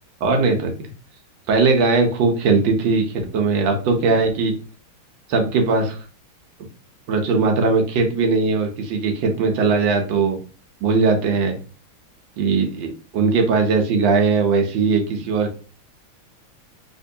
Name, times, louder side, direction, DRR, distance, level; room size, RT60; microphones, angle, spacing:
voice 1, 0.2-0.7 1.5-4.5 5.3-6.0 7.1-10.4 10.8-11.5 12.4-12.9 13.1-15.6, right 4 dB, 70° right, 3 dB, 1.3 m, -19 dB
3.6 x 3.0 x 2.6 m, 0.36 s
omnidirectional pair, 2.3 m